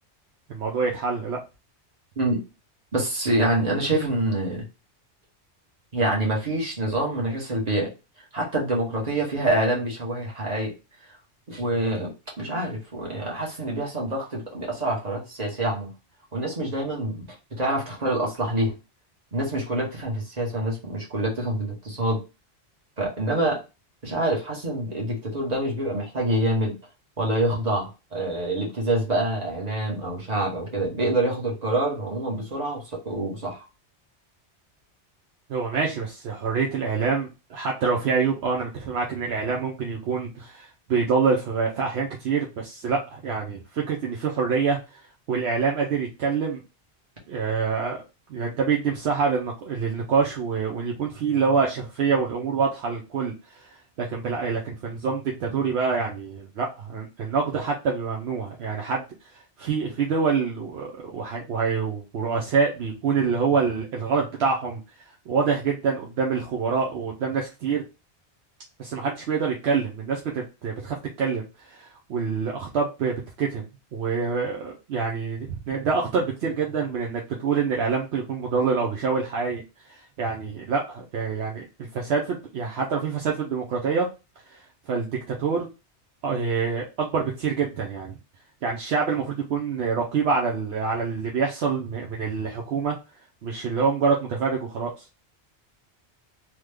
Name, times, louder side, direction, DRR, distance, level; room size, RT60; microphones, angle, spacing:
voice 1, 0.5-1.4 35.5-45.0 45.3-46.6 47.3-48.0 48.3-59.1 59.3-64.8 65.3-67.8 68.8-73.6 73.9-79.6 79.9-84.1 84.5-85.7 86.2-88.2 88.6-93.0 93.4-95.1, right 5 dB, 70° right, -1 dB, 0.8 m, -26 dB
voice 2, 2.9-4.6 5.9-7.9 8.3-10.7 11.5-12.1 12.4-15.9 16.3-18.7 19.3-22.2 23.0-23.6 24.0-26.7 27.2-33.6, right 1 dB, 40° right, -2 dB, 1.2 m, -26 dB
3.1 x 2.1 x 3.3 m, 0.29 s
omnidirectional pair, 1.1 m